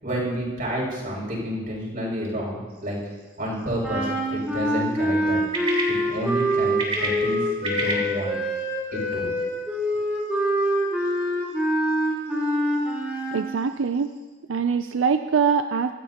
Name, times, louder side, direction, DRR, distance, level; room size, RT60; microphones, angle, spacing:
voice 1, 0.0-3.0 3.4-5.4 5.9-8.3 8.9-9.3, equal, 45° right, -4 dB, 6.7 m, -29 dB
sound 1, 2.7-14.3, right 1 dB, 30° right, 3.2 m, -36 dB
sound 2, 3.8-13.5, equal, 5° right, 4.6 m, -25 dB
voice 2, 13.3-14.1 14.5-15.9, right 6 dB, 85° right, 8 dB, 0.5 m, -23 dB
25.0 x 15.5 x 3.0 m, 1.3 s
head